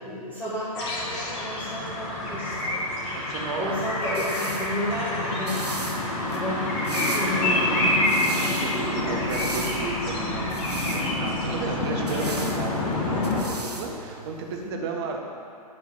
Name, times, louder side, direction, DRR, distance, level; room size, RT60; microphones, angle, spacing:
voice 1, 0.0-2.8 3.6-5.8 6.1-6.6 6.9-7.9 12.0-12.3 14.7-15.0, equal, 5° left, -11 dB, 1.7 m, -32 dB
sound 1, 0.7-13.4, left 2 dB, 35° left, 2.2 m, -27 dB
voice 2, 3.1-3.9 8.2-15.2, right 4 dB, 40° right, 1 dB, 1.4 m, -34 dB
sound 2, 3.7-14.7, right 3 dB, 85° right, 0.9 m, -40 dB
10.0 x 4.7 x 7.3 m, 2.5 s
figure-of-eight pair, 115°, 20 cm